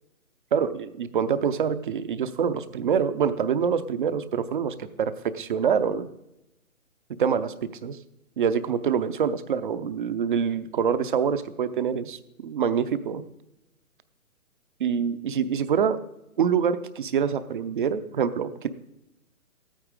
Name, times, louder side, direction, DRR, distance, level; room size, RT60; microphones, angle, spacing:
voice 1, 0.5-6.1 7.2-8.0 8.4-13.2 14.8-16.0 16.4-18.7, right 7 dB, 35° right, 13 dB, 0.7 m, -25 dB
14.5 x 9.0 x 4.8 m, 0.90 s
figure-of-eight pair, 135°, 43 cm